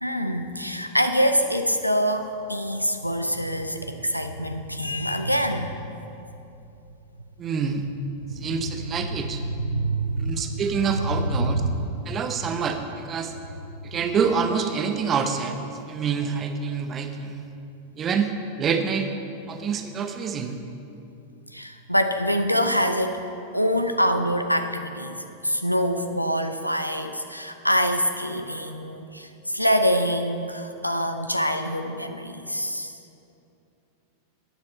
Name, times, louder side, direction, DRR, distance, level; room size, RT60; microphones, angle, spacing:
voice 1, 0.0-5.8 8.8-9.1 9.4-10.9 11.3-11.8 21.5-23.3 23.5-33.0, equal, 90° left, 7 dB, 0.6 m, -25 dB
voice 2, 7.4-7.9 8.4-9.4 10.2-11.6 12.1-13.3 13.8-15.6 15.9-17.5 18.0-18.3 18.6-19.1 19.5-20.6, right 6 dB, 25° right, 6 dB, 0.8 m, -26 dB
14.0 x 9.4 x 4.3 m, 2.8 s
figure-of-eight pair, 90°, 0 cm